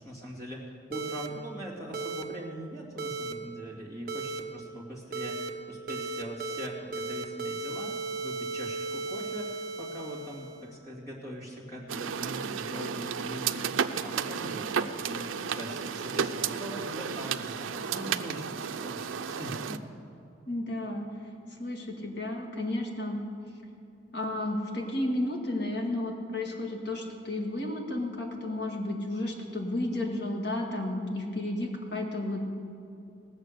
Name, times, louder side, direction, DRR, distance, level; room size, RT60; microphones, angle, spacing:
voice 1, 0.0-13.7 14.0-19.8, equal, 15° left, -4 dB, 2.5 m, -42 dB
sound 1, 0.9-1.3 1.9-2.2 3.0-3.3 4.1-4.4 5.1-5.5 5.9-6.7 6.9-10.7, right 3 dB, 50° right, 0.7 m, -35 dB
sound 2, 11.9-19.8, right 6 dB, 85° right, 0.5 m, -33 dB
voice 2, 20.5-21.1 21.5-23.3 24.1-32.4, left 1 dB, 55° left, 1 dB, 2.0 m, -32 dB
19.0 x 7.3 x 6.7 m, 2.6 s
head